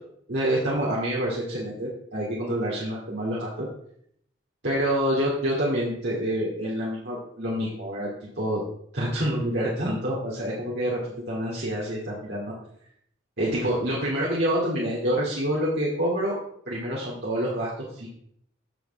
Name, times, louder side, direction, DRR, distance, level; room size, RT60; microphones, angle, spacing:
voice 1, 0.3-3.7 4.6-8.1 8.4-8.6 8.9-11.0 11.3-12.5 13.4-16.4 16.7-18.1, equal, 60° right, -6 dB, 2.6 m, -27 dB
15.0 x 6.7 x 3.5 m, 0.68 s
head